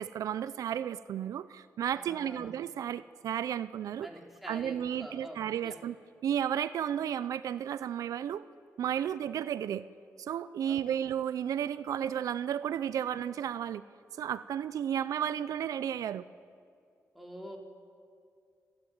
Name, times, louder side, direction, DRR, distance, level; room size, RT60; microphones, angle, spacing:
voice 1, 0.0-4.1 4.5-5.9 6.2-8.5 8.8-9.8 10.2-13.8 14.2-16.2, right 9 dB, 90° right, 15 dB, 0.5 m, -33 dB
voice 2, 1.9-2.5 4.0-5.8 10.7-11.0 17.1-17.6, equal, ahead, -1 dB, 3.6 m, -46 dB
28.0 x 11.0 x 9.3 m, 2.3 s
cardioid pair, 95°, 6 cm